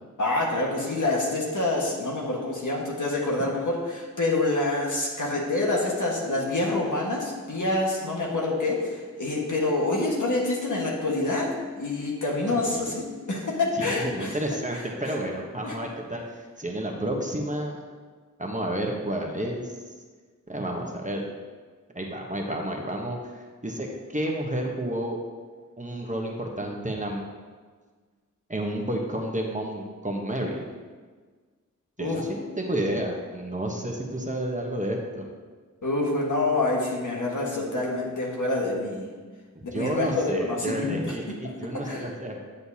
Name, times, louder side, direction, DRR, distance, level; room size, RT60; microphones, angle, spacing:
voice 1, 0.2-11.5 11.8-14.3 14.7-14.8 15.6-15.7 32.0-32.2 35.8-39.1 39.6-41.1 41.4-41.5 41.8-42.1, left 2 dB, 70° left, -3 dB, 1.6 m, -27 dB
voice 2, 13.8-16.2 16.6-17.8 18.4-19.7 20.5-21.2 21.9-25.2 25.8-27.2 28.5-30.6 32.0-35.2 39.5-42.4, right 1 dB, 25° right, 0 dB, 1.1 m, -31 dB
9.6 x 6.7 x 2.8 m, 1.5 s
wide cardioid pair, 55°, 31 cm